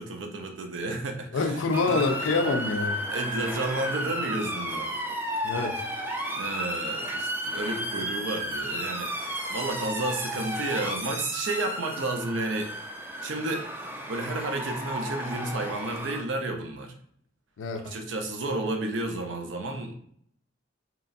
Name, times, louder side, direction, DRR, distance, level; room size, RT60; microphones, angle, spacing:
voice 1, 0.0-1.6 1.9-2.0 3.1-4.9 6.3-9.1 9.5-12.9 13.2-13.7 14.1-16.9 17.8-19.9, right 2 dB, 70° right, 4 dB, 0.5 m, -31 dB
voice 2, 1.3-3.0 5.4-5.9 17.6-17.9, left 3 dB, 90° left, 6 dB, 0.4 m, -26 dB
Motor vehicle (road) / Siren, 1.7-16.2, equal, 10° right, 0.3 m, -33 dB
3.0 x 2.3 x 2.5 m, 0.63 s
head